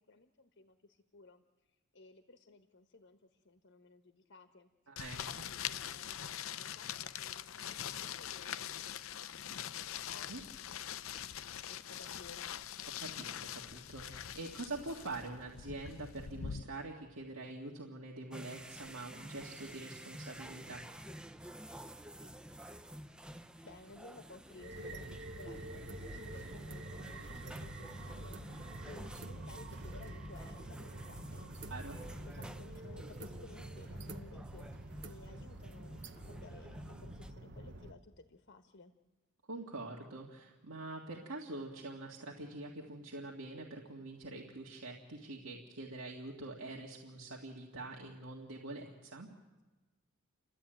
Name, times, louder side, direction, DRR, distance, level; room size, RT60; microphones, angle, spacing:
voice 1, 0.0-1.4 1.9-4.7 5.1-9.5 10.1-10.3 11.7-12.5 23.6-31.5 32.0-38.9, left 3 dB, 55° left, 7 dB, 1.2 m, -57 dB
voice 2, 4.9-5.2 10.3-10.4 13.0-20.9 31.7-32.0 39.5-49.3, right 2 dB, 80° right, -1 dB, 2.0 m, -45 dB
sound 1, 5.0-16.6, left 9 dB, 75° left, 0.6 m, -43 dB
sound 2, 18.3-37.3, right 1 dB, 5° right, 0.7 m, -51 dB
sound 3, 24.6-37.9, right 1 dB, 55° right, 1.2 m, -47 dB
30.0 x 13.0 x 9.0 m, 1.2 s
head